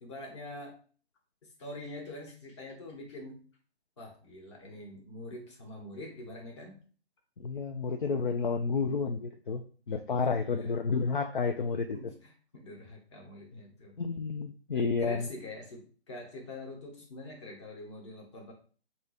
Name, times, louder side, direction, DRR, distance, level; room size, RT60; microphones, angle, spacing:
voice 1, 0.0-0.8 1.6-3.4 4.0-6.8 8.8-9.0 10.1-10.8 11.9-14.0 14.7-18.5, left 1 dB, 25° left, 1 dB, 1.2 m, -45 dB
voice 2, 7.4-9.6 9.9-12.0 14.0-15.3, left 4 dB, 50° left, 5 dB, 0.5 m, -30 dB
3.7 x 2.8 x 4.8 m, 0.40 s
figure-of-eight pair, 150°, 33 cm